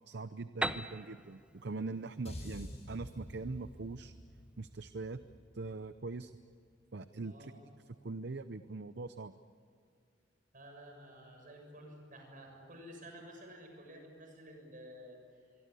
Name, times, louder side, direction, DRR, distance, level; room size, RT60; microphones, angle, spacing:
voice 1, 0.1-4.1 4.6-5.2 5.5-6.3 6.9-7.5 8.0-9.3, right 3 dB, 65° right, 12 dB, 0.7 m, -42 dB
Piano, 0.6-4.3, right 1 dB, 5° right, 0.6 m, -41 dB
sound 1, 2.3-6.6, equal, 35° left, 7.0 m, -49 dB
voice 2, 7.2-7.6 10.5-15.5, equal, 45° right, 3 dB, 7.0 m, -52 dB
24.5 x 24.0 x 8.4 m, 2.2 s
head